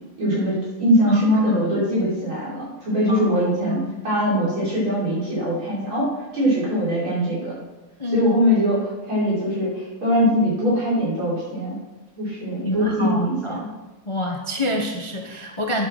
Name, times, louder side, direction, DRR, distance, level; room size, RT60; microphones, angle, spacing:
voice 1, 0.2-7.5 8.1-11.8 12.2-13.7, equal, 75° right, -7 dB, 6.5 m, -22 dB
voice 2, 1.1-1.7 3.1-4.0 8.0-8.3 12.6-13.6 14.1-15.9, left 1 dB, 20° left, 2 dB, 0.8 m, -27 dB
11.5 x 8.8 x 6.5 m, 1.1 s
omnidirectional pair, 2.3 m